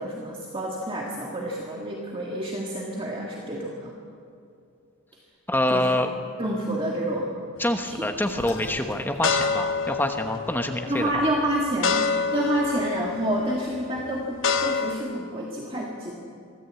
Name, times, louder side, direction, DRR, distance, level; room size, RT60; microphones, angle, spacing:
voice 1, 0.0-3.9 5.7-5.9 6.4-7.5 7.9-8.3 10.9-12.0 12.3-16.2, right 1 dB, 25° right, -2 dB, 2.0 m, -28 dB
voice 2, 5.5-6.1 7.6-11.1, left 1 dB, 10° left, 5 dB, 1.1 m, -26 dB
sound 1, 7.6-8.1 8.6-14.9, left 5 dB, 60° left, 1.2 m, -28 dB
sound 2, 8.0-9.6, left 1 dB, 35° left, 2.2 m, -45 dB
sound 3, 8.5-10.1 10.5-10.6 11.8-11.9, left 3 dB, 85° left, 2.8 m, -46 dB
23.5 x 15.0 x 8.3 m, 2.6 s
head